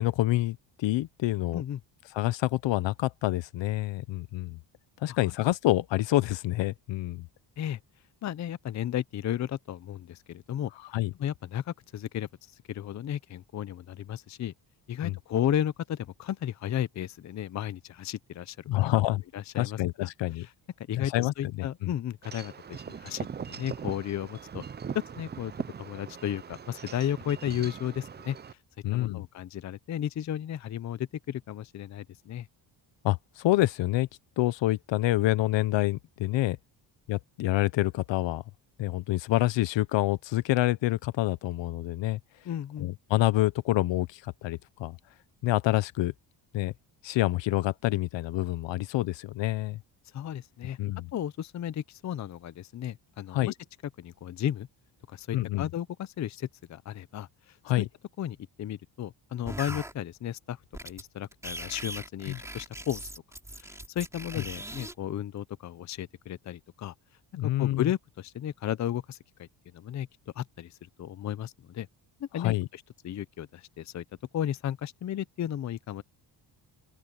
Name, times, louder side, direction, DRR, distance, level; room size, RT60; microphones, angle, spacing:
voice 1, 0.0-1.6 2.1-4.6 5.0-7.3 10.9-11.1 15.0-15.2 18.7-19.2 19.5-20.5 21.0-21.5 21.8-21.9 28.8-29.3 33.0-34.1 34.4-36.6 37.1-38.4 38.8-42.2 42.8-45.0 45.4-46.1 46.5-46.7 47.0-49.8 50.8-51.1 53.3-53.5 55.3-55.7 57.7-57.8 62.3-62.4 67.4-67.9 72.4-72.7, left 16 dB, 80° left, 0.9 m, -27 dB
voice 2, 8.2-10.7 11.2-12.3 12.7-14.5 14.9-18.8 19.3-20.1 20.4-20.5 20.9-24.6 24.9-25.5 25.8-28.4 28.9-32.5 42.4-42.9 50.1-50.8 51.1-53.5 54.0-54.7 55.1-57.9 58.2-63.1 63.6-66.9 67.6-69.5 69.7-70.1 70.4-71.9 72.2-74.0 74.3-76.0, left 10 dB, 40° left, 0.6 m, -34 dB
Wind chime / Wind, 22.2-28.5, right 7 dB, 25° right, 0.5 m, -40 dB
sound 1, 59.5-59.9 60.7-61.0 61.3-64.9, right 1 dB, 5° right, 3.5 m, -40 dB
open air
cardioid pair, 135°, 43 cm